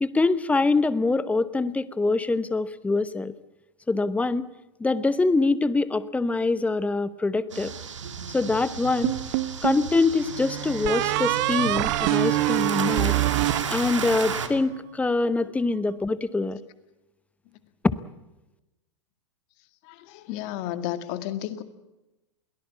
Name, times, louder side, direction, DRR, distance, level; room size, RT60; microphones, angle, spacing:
voice 1, 0.0-3.3 3.9-4.5 4.8-7.7 8.3-9.2 9.6-13.2 13.7-16.6 17.8-17.9, left 3 dB, 10° left, 16 dB, 1.0 m, -24 dB
sound 1, 7.5-14.5, right 6 dB, 85° right, 2.3 m, -34 dB
sound 2, 9.0-9.9 10.8-14.3, right 19 dB, 50° right, 0.8 m, -25 dB
Bowed string instrument, 10.2-15.1, right 9 dB, 70° right, 4.4 m, -38 dB
voice 2, 19.8-21.6, left 12 dB, 50° left, 10 dB, 2.0 m, -32 dB
22.5 x 18.0 x 8.5 m, 0.99 s
hypercardioid pair, 105°, 15 cm